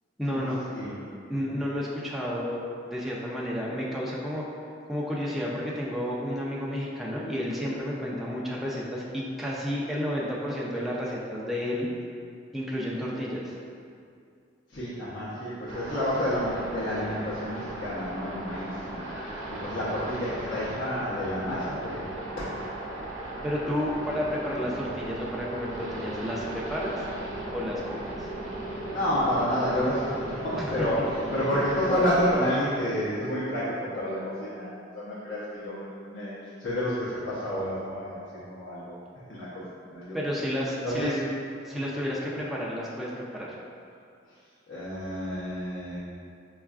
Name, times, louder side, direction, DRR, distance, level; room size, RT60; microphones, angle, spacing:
voice 1, 0.2-0.6 1.3-4.4 4.9-11.9 12.5-13.6 23.4-27.1 27.5-28.3 30.6-30.9 40.1-41.2 41.6-43.5, equal, ahead, -6 dB, 0.3 m, -31 dB
voice 2, 14.7-19.1 19.6-22.5 28.9-31.0 31.3-36.3 36.6-39.0 39.3-39.6 39.9-40.2 40.8-41.2 41.7-41.8 44.7-46.0, equal, 70° left, -11 dB, 0.7 m, -29 dB
sound 1, 15.7-32.4, right 1 dB, 80° right, 0.7 m, -37 dB
5.2 x 2.3 x 2.3 m, 2.4 s
head